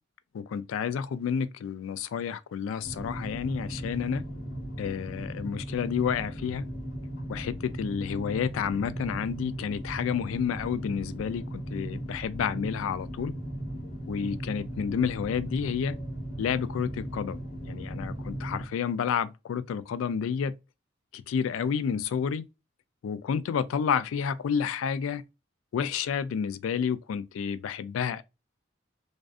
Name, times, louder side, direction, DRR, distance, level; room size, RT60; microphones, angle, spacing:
voice 1, 0.3-4.2 4.8-6.7 7.3-13.3 14.1-16.0 16.4-17.4 17.7-20.6 21.1-22.5 23.0-25.2 25.7-28.2, left 7 dB, 85° left, 0.3 m, -30 dB
sound 1, 2.8-18.7, right 1 dB, 50° left, 1.0 m, -37 dB
2.5 x 2.3 x 2.3 m
head